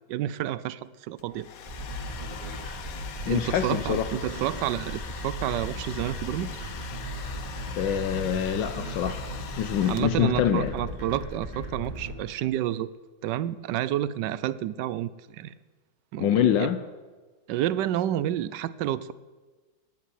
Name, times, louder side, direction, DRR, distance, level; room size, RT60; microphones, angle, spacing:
voice 1, 0.1-1.5 3.3-6.5 9.9-12.9 13.2-15.5 16.1-16.7 17.5-19.1, right 12 dB, 75° right, 1.2 m, -30 dB
Domestic sounds home sounds, 1.2-10.4, left 7 dB, 55° left, 1.2 m, -42 dB
sound 1, 1.7-12.1, equal, 15° right, 2.9 m, -36 dB
voice 2, 3.3-4.1 7.8-9.3 9.6-10.7 16.2-16.8, left 10 dB, 75° left, 1.4 m, -25 dB
16.0 x 7.3 x 9.5 m
omnidirectional pair, 2.0 m